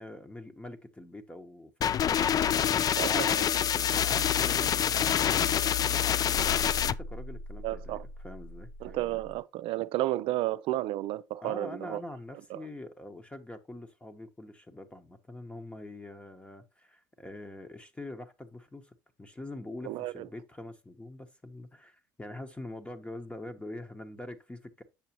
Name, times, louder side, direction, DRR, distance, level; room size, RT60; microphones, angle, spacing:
voice 1, 0.0-2.3 2.7-6.4 6.8-9.0 11.4-24.8, left 1 dB, 10° left, 1.0 m, -44 dB
sound 1, 1.8-6.9, left 9 dB, 40° left, 0.4 m, -26 dB
voice 2, 3.0-3.5 7.6-8.0 8.8-12.0 12.5-12.6 19.8-20.3, right 15 dB, 60° right, 0.5 m, -32 dB
sound 2, 6.3-9.4, equal, 80° left, 1.2 m, -42 dB
7.1 x 6.5 x 2.9 m
hypercardioid pair, 70°, 10 cm